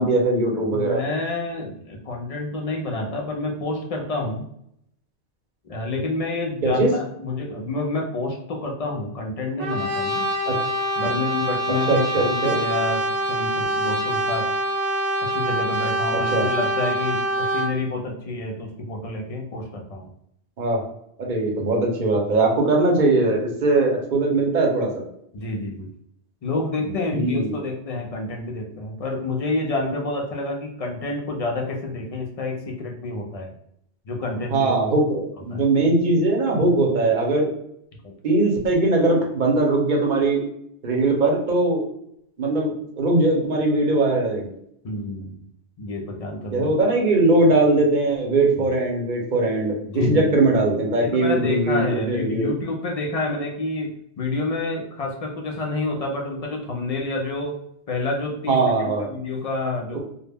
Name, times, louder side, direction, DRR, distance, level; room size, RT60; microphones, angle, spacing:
voice 1, 0.0-1.0 6.6-6.9 10.5-10.6 11.9-12.5 16.1-16.4 20.6-20.8 21.2-25.0 27.1-27.5 34.5-37.5 38.2-40.4 40.8-41.8 42.4-44.5 46.5-49.8 50.0-52.5 58.5-59.0 59.9-60.0, right 2 dB, 50° right, -1 dB, 0.7 m, -20 dB
voice 2, 0.7-4.4 5.6-10.3 11.0-14.5 15.2-20.1 25.3-25.9 26.4-33.5 34.1-34.8 35.5-35.7 38.0-38.1 44.8-45.5 45.8-46.7 48.6-48.7 49.9-50.4 51.0-57.6 57.9-60.0, left 2 dB, 60° left, 1 dB, 0.4 m, -28 dB
Brass instrument, 9.6-17.8, right 1 dB, 85° right, 0.9 m, -25 dB
2.2 x 2.0 x 3.3 m, 0.73 s
omnidirectional pair, 1.1 m